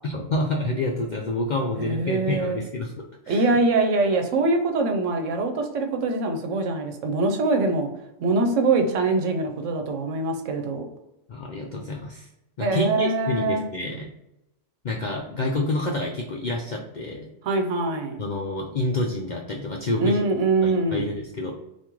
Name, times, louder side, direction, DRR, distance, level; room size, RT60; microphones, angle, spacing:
voice 1, 0.0-2.9 3.3-3.6 11.3-12.3 12.6-14.1 14.8-17.3 18.2-20.2 20.6-21.5, left 2 dB, 65° left, -1 dB, 0.4 m, -28 dB
voice 2, 1.9-2.6 3.3-7.9 8.2-10.8 12.6-13.7 17.4-18.2 20.0-21.1, right 3 dB, 80° right, 5 dB, 1.0 m, -23 dB
3.0 x 2.5 x 3.6 m, 0.90 s
omnidirectional pair, 1.3 m